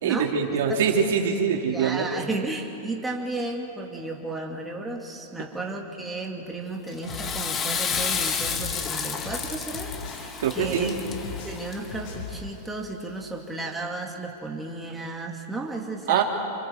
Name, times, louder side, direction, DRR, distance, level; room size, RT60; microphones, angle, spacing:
voice 1, 0.0-2.1 10.4-10.9 16.1-16.2, right 7 dB, 75° right, 1 dB, 3.5 m, -23 dB
voice 2, 1.7-10.9 11.4-16.2, right 2 dB, 10° right, -1 dB, 2.5 m, -34 dB
Water / Toilet flush, 6.9-12.1, left 6 dB, 25° left, 1.9 m, -31 dB
sound 1, 7.0-10.3 10.5-12.4, left 5 dB, 50° left, 6.4 m, -39 dB
29.5 x 28.5 x 4.7 m, 2.9 s
supercardioid pair, 140°, 0 cm